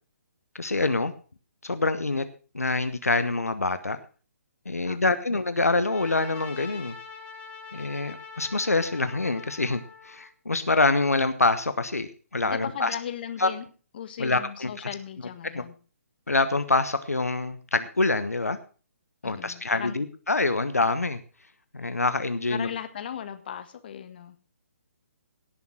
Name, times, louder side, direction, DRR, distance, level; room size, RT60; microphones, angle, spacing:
voice 1, 0.5-1.1 1.6-2.2 2.5-4.0 4.6-7.0 7.7-12.9 13.4-13.5 14.2-14.7 15.5-15.6 16.3-18.6 19.2-21.2 21.7-22.7, left 3 dB, 75° left, 11 dB, 1.1 m, -25 dB
voice 2, 4.8-5.2 12.4-13.7 13.9-15.7 19.2-19.9 22.5-24.4, left 9 dB, 40° left, 9 dB, 1.5 m, -37 dB
Trumpet, 5.8-10.3, left 5 dB, 15° left, 2.3 m, -44 dB
17.5 x 7.0 x 6.1 m, 0.38 s
figure-of-eight pair, 135°, 8 cm